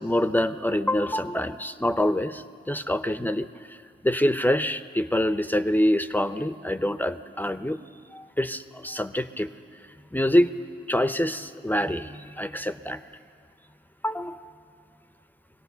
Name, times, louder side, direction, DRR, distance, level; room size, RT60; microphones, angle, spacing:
voice 1, 0.0-3.8 4.0-7.8 8.1-9.5 10.1-10.5 10.9-13.0 14.0-14.5, left 1 dB, 10° left, 11 dB, 0.7 m, -25 dB
22.5 x 17.0 x 6.8 m, 2.2 s
cardioid pair, 60°, 20 cm